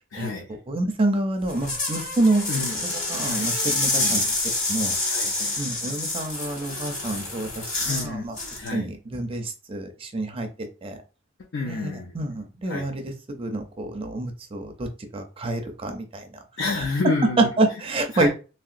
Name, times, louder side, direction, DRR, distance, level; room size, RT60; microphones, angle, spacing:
voice 1, 0.1-0.6 2.5-2.7 3.2-3.5 4.0-4.3 5.1-5.6 7.9-8.3 8.6-8.9 11.5-12.1 12.7-12.9 16.6-17.5 18.1-18.3, left 3 dB, 70° left, 1 dB, 0.5 m, -29 dB
voice 2, 0.7-2.4 2.9-4.3 4.7-4.9 5.6-8.4 8.7-11.0 11.7-16.2 17.4-18.3, right 2 dB, 30° right, 5 dB, 0.5 m, -27 dB
sound 1, 1.4-8.1 8.4-8.7, left 2 dB, 40° left, 1.5 m, -27 dB
3.0 x 2.8 x 2.4 m, 0.33 s
head